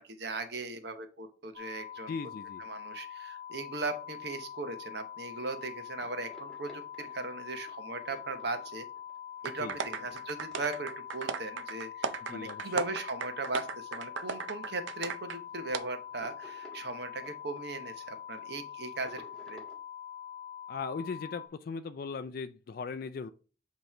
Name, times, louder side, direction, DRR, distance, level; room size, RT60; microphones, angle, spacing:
voice 1, 0.0-2.1 2.6-8.9 9.4-19.6, right 3 dB, 60° right, 1.0 m, -38 dB
sound 1, 1.5-21.5, left 9 dB, 30° left, 1.2 m, -44 dB
voice 2, 2.1-2.6 6.0-6.1 9.6-9.8 12.2-12.9 20.7-23.3, left 4 dB, 50° left, 0.3 m, -38 dB
sound 2, 6.1-11.1 11.4-11.6 12.4-12.5 12.9-13.0 13.4-13.9 14.2-14.3 14.5-14.7 15.1-15.5 16.0-19.8, right 1 dB, ahead, 1.7 m, -55 dB
sound 3, 9.4-15.4 15.7-15.8, right 6 dB, 85° right, 0.5 m, -37 dB
7.8 x 3.1 x 4.3 m
head